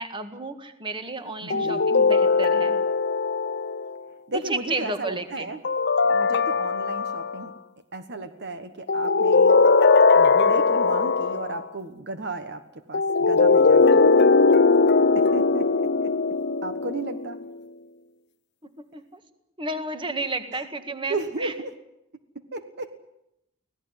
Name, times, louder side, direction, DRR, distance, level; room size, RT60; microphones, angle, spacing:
voice 1, 0.0-2.8 4.3-5.5 18.8-19.2 19.6-21.5, right 2 dB, 25° right, 8 dB, 1.8 m, -32 dB
voice 2, 1.4-1.8 4.3-5.6 6.1-7.5 7.9-9.6 10.1-12.6 12.9-14.0 15.1-16.1 16.6-17.4 20.5-20.7 21.1-21.7 22.5-22.9, right 2 dB, 50° right, 9 dB, 1.3 m, -34 dB
sound 1, 1.5-4.0 5.6-7.5 8.9-11.6 12.9-17.5, left 4 dB, 50° left, 0.8 m, -20 dB
25.0 x 17.0 x 9.8 m, 0.84 s
head